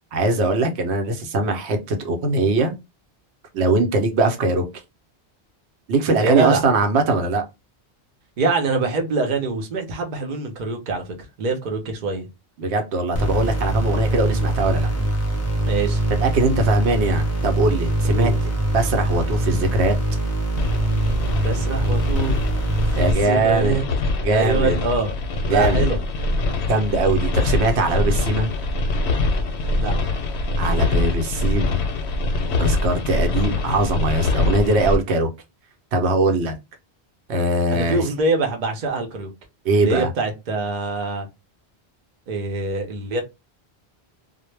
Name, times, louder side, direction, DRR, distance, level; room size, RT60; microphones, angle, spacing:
voice 1, 0.1-2.7 3.5-4.7 5.9-7.4 12.6-14.9 16.2-18.3 18.7-19.9 23.0-23.8 24.2-24.8 25.5-25.9 26.7-28.5 30.6-31.8 32.6-35.3 35.9-36.5 37.3-38.0 39.6-40.1, right 2 dB, 85° right, 0.9 m, -21 dB
voice 2, 6.2-6.6 8.4-11.0 11.4-12.3 15.7-16.0 18.1-18.4 21.4-22.4 23.0-23.8 24.3-25.1 25.5-26.0 29.8-29.9 37.7-39.3 39.7-41.3 42.3-43.2, right 3 dB, 50° right, 0.7 m, -24 dB
sound 1, 13.1-23.1, right 1 dB, 20° left, 0.4 m, -23 dB
sound 2, 20.6-35.0, left 2 dB, 90° left, 0.9 m, -24 dB
2.0 x 2.0 x 3.1 m
omnidirectional pair, 1.1 m